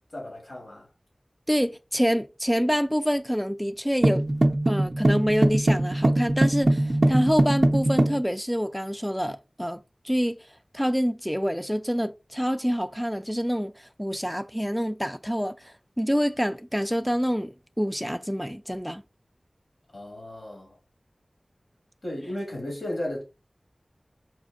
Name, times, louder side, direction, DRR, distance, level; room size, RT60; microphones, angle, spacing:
voice 1, 0.1-0.9 19.9-20.7 22.0-23.2, left 1 dB, 75° left, 1.8 m, -34 dB
voice 2, 1.5-4.3 4.7-10.4 10.7-19.0, equal, ahead, 0.3 m, -27 dB
sound 1, 4.0-8.2, right 1 dB, 55° right, 0.5 m, -22 dB
4.3 x 2.6 x 2.4 m
wide cardioid pair, 45°, 0 cm